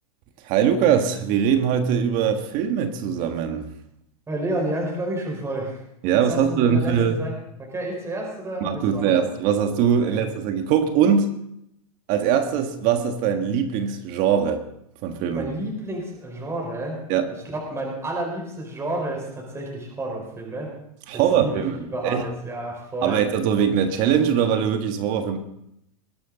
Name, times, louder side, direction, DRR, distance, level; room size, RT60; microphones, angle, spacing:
voice 1, 0.4-3.7 6.0-7.3 8.6-11.3 12.1-14.6 15.0-15.5 17.1-17.3 21.1-22.2 23.0-25.4, right 8 dB, 45° right, 6 dB, 1.6 m, -21 dB
voice 2, 4.3-5.8 6.3-7.3 7.6-9.3 10.0-10.2 15.3-17.0 17.5-20.7 21.1-23.2, right 1 dB, 15° right, -1 dB, 4.7 m, -30 dB
21.0 x 11.5 x 4.0 m, 0.78 s
hypercardioid pair, 125°, 19 cm